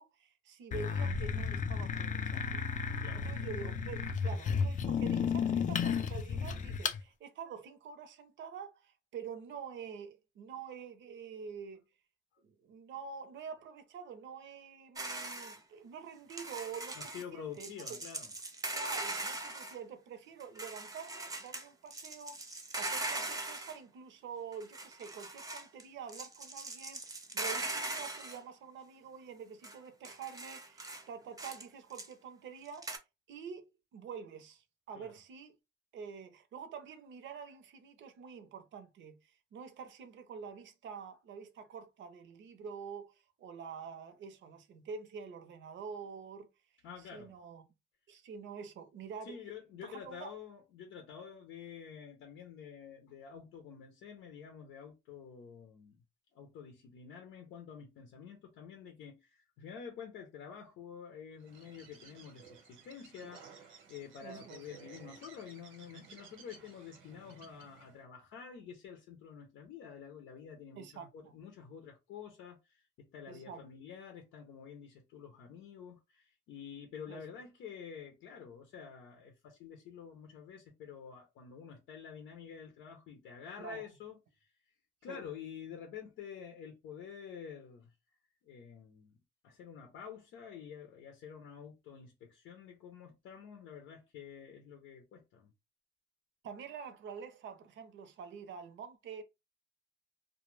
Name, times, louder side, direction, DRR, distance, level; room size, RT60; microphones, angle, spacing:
voice 1, 0.0-11.8 12.4-18.0 18.7-33.0 33.3-35.5 35.9-46.5 47.1-47.6 48.1-49.4 49.8-50.3 64.2-64.6 70.8-71.3 73.3-73.7 77.1-77.2 83.6-83.9 85.1-85.2 96.4-99.2, right 6 dB, 70° right, 0.6 m, -47 dB
sound 1, 0.7-7.0, left 6 dB, 40° left, 0.4 m, -33 dB
sound 2, 15.0-15.6 16.3-17.2 17.6-19.8 20.4-21.7 21.9-23.8 24.5-25.8 26.1-28.4 29.6-29.8 30.0-31.0 31.4-31.6 31.9-32.1 32.8-33.0, right 2 dB, 20° right, 0.5 m, -40 dB
voice 2, 17.0-18.3 34.9-35.1 46.8-47.3 49.2-56.0 56.3-84.5 85.0-87.9 88.5-89.2 89.4-95.5, left 7 dB, 90° left, 0.6 m, -49 dB
Bird, 61.4-68.0, right 6 dB, 90° right, 0.9 m, -56 dB
2.2 x 2.1 x 3.1 m
cardioid pair, 90°, 20 cm